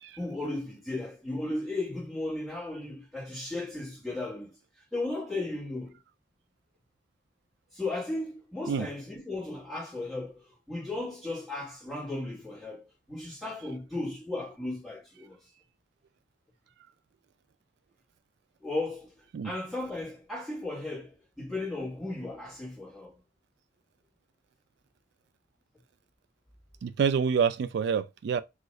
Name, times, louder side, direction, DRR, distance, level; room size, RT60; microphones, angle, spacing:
voice 1, 0.2-4.5 4.9-6.0 7.7-15.4 18.6-19.1 19.4-23.1, left 2 dB, ahead, 1.4 m, -35 dB
voice 2, 26.8-28.4, right 6 dB, 60° right, 0.3 m, -27 dB
2.7 x 2.4 x 3.1 m
head